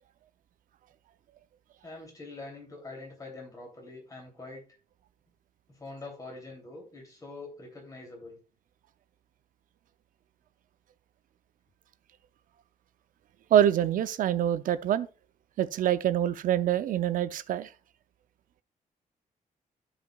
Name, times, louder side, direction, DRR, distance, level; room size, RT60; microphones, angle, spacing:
voice 1, 1.8-4.6 5.7-8.4, left 3 dB, 25° left, 2.9 m, -44 dB
voice 2, 13.5-15.1 15.6-17.7, right 11 dB, 75° right, 0.6 m, -25 dB
14.5 x 5.0 x 2.3 m
wide cardioid pair, 170°, 14 cm